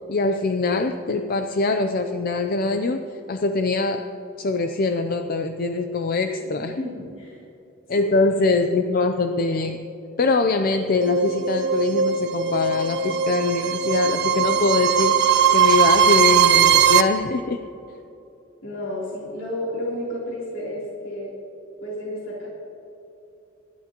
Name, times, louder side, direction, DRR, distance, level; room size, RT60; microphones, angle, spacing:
voice 1, 0.1-4.0 4.4-6.8 7.9-9.8 10.2-15.1 15.5-17.6, left 3 dB, 45° left, 7 dB, 0.5 m, -23 dB
voice 2, 6.2-7.4 8.0-8.1 18.6-21.3 21.8-22.5, left 1 dB, 70° left, -7 dB, 3.5 m, -31 dB
sound 1, 11.0-17.0, right 7 dB, 60° right, 0.7 m, -19 dB
25.5 x 12.0 x 3.0 m, 2.8 s
head